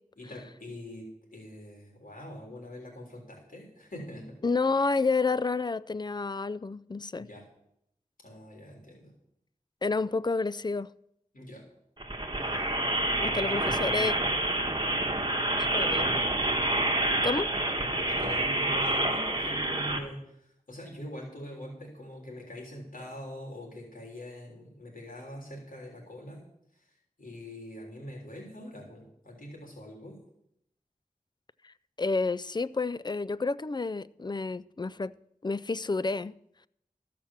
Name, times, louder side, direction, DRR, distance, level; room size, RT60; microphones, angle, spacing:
voice 1, 0.2-4.4 7.1-7.5 8.2-9.1 11.3-11.7 12.4-12.7 13.3-14.3 15.6-15.9 17.9-26.4 27.2-30.2, left 1 dB, 85° left, 3.6 m, -44 dB
voice 2, 4.4-7.3 9.8-10.9 13.2-14.1 15.7-16.1 17.2-17.5 31.6-35.1 35.4-36.3, left 3 dB, 30° left, 0.4 m, -29 dB
sound 1, 12.0-20.0, right 1 dB, 30° right, 1.5 m, -28 dB
14.0 x 5.9 x 7.3 m
wide cardioid pair, 45°, 14 cm